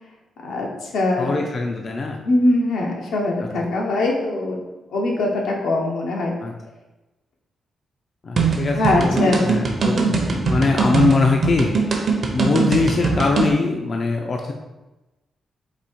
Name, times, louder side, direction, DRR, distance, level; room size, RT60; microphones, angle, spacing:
voice 1, 0.4-1.4 2.2-4.6 4.9-6.4 8.7-9.4 9.9-10.6, left 2 dB, 85° left, -1 dB, 1.0 m, -22 dB
voice 2, 1.2-2.2 3.4-3.5 6.4-6.5 8.2-10.2 10.5-11.7 12.3-14.5, left 3 dB, 35° left, 2 dB, 0.4 m, -22 dB
sound 1, 8.4-13.5, right 4 dB, 45° right, 0.6 m, -21 dB
4.1 x 2.7 x 4.4 m, 1.1 s
wide cardioid pair, 155°, 0 cm